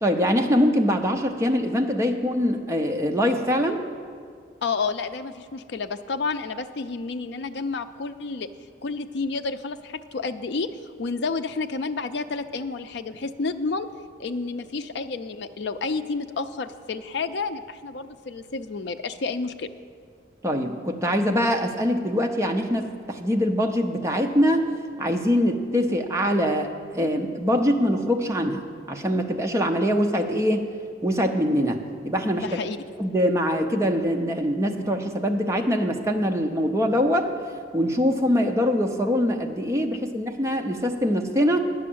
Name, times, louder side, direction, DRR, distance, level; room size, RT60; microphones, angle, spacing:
voice 1, 0.0-3.8 20.4-24.7 25.0-30.7 31.0-32.5 33.0-37.3 37.7-41.6, equal, 15° right, 3 dB, 0.6 m, -23 dB
voice 2, 4.6-8.5 8.8-10.7 11.0-13.9 14.2-19.7 32.4-32.8, left 4 dB, 60° left, 9 dB, 0.4 m, -30 dB
9.7 x 6.3 x 8.5 m, 2.1 s
head